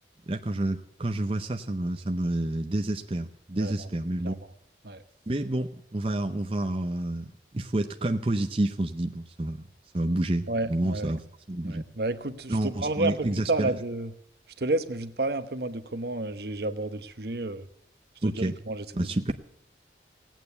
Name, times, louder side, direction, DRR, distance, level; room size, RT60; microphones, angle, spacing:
voice 1, 0.3-4.3 5.3-9.6 9.9-11.9 12.5-13.7 18.2-18.6 18.9-19.4, right 1 dB, 30° right, 4 dB, 0.7 m, -29 dB
voice 2, 3.5-3.9 4.2-4.4 4.8-5.0 10.5-11.1 11.6-14.1 14.6-17.7 18.2-18.8, right 2 dB, 60° right, 10 dB, 1.0 m, -31 dB
17.0 x 9.1 x 8.0 m, 0.71 s
head